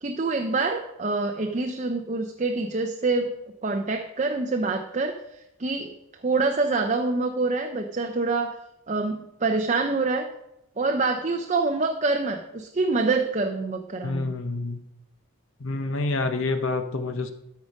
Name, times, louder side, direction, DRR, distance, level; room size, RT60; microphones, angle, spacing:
voice 1, 0.0-3.3 3.6-5.1 5.6-5.9 6.2-8.6 8.9-10.3 10.8-14.4, right 3 dB, 30° right, 4 dB, 0.6 m, -26 dB
voice 2, 14.0-14.8 15.6-17.3, left 3 dB, 60° left, 8 dB, 0.7 m, -27 dB
13.5 x 5.0 x 5.3 m, 0.85 s
head